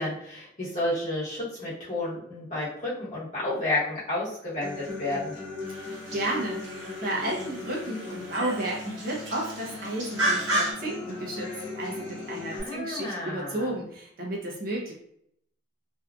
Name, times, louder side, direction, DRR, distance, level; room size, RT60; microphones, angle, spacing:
voice 1, 0.0-5.3 12.5-13.7, left 2 dB, 40° left, -8 dB, 1.1 m, -31 dB
Human voice / Acoustic guitar, 4.6-12.6, left 3 dB, 85° left, 0.9 m, -38 dB
sound 1, 5.6-10.7, right 1 dB, 80° right, 1.2 m, -33 dB
voice 2, 6.1-14.9, right 1 dB, 50° right, -3 dB, 0.7 m, -32 dB
2.7 x 2.3 x 2.4 m, 0.71 s
head